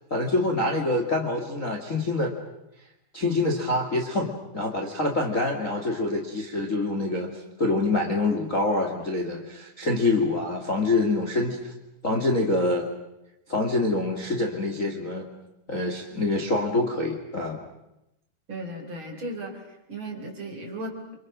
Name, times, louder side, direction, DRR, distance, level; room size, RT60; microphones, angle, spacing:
voice 1, 0.1-2.3 3.1-11.7 12.0-12.9 13.5-15.3 15.7-17.6, left 2 dB, 25° left, 1 dB, 2.3 m, -26 dB
voice 2, 18.5-21.2, right 1 dB, 35° right, 1 dB, 4.9 m, -36 dB
30.0 x 26.5 x 6.3 m, 0.87 s
omnidirectional pair, 4.2 m